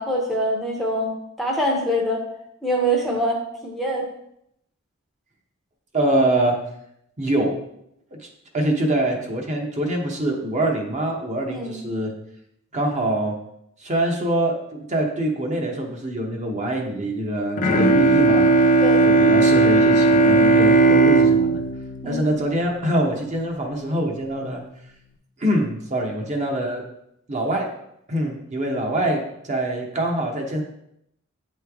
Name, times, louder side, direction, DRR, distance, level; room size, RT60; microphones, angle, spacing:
voice 1, 0.0-2.2 2.6-4.1 11.5-11.8 18.8-19.1 22.0-22.3, equal, ahead, -1 dB, 0.7 m, -24 dB
voice 2, 5.9-6.6 7.2-7.6 8.1-8.3 8.5-12.1 12.7-13.4 13.8-18.5 19.0-21.6 22.0-24.6 25.4-26.8 27.3-27.7 28.1-30.6, right 1 dB, 35° right, 1 dB, 0.9 m, -24 dB
Bowed string instrument, 17.6-23.2, right 3 dB, 40° left, 0.5 m, -17 dB
8.4 x 3.2 x 3.5 m, 0.76 s
head